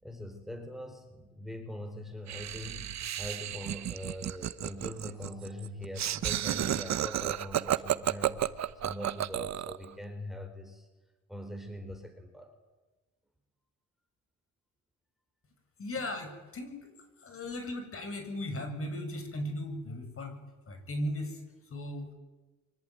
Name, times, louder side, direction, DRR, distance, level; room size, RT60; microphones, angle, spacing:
voice 1, 0.0-8.4 8.8-10.9 11.3-12.5, left 1 dB, ahead, 6 dB, 4.5 m, -42 dB
Laughter, 2.3-9.8, right 11 dB, 65° right, 1.1 m, -32 dB
voice 2, 15.8-16.9 17.2-20.4 20.7-22.1, left 1 dB, 45° left, 6 dB, 7.2 m, -37 dB
26.0 x 24.0 x 9.3 m, 1.2 s
cardioid pair, 90°, 30 cm